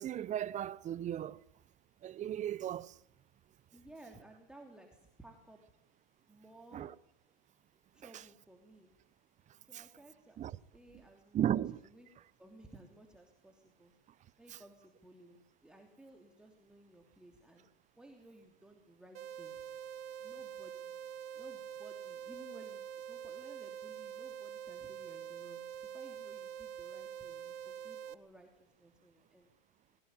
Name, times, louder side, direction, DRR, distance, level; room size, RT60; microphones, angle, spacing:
voice 1, 0.0-1.4 2.0-2.9 6.7-6.9 9.7-9.8 10.4-10.5 11.3-11.8, right 11 dB, 25° right, 0.8 m, -35 dB
voice 2, 3.7-5.6 6.3-6.9 7.9-9.0 9.6-10.4 10.7-11.5 11.8-12.1 12.4-13.9 14.4-17.7 18.0-19.6 20.2-21.0 21.3-29.5, right 1 dB, 5° right, 3.0 m, -57 dB
sound 1, 19.1-28.1, right 9 dB, 80° right, 1.5 m, -45 dB
21.0 x 18.0 x 9.7 m
hypercardioid pair, 120°, 29 cm